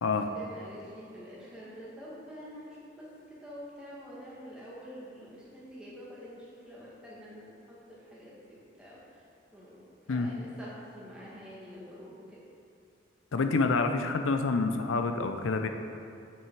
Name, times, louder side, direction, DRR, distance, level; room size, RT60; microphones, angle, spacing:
voice 1, 0.1-9.2 9.5-9.8 10.1-12.4, equal, 5° right, -8 dB, 1.8 m, -47 dB
voice 2, 13.3-15.7, left 3 dB, 80° left, 6 dB, 0.5 m, -27 dB
8.7 x 5.7 x 4.6 m, 2.6 s
head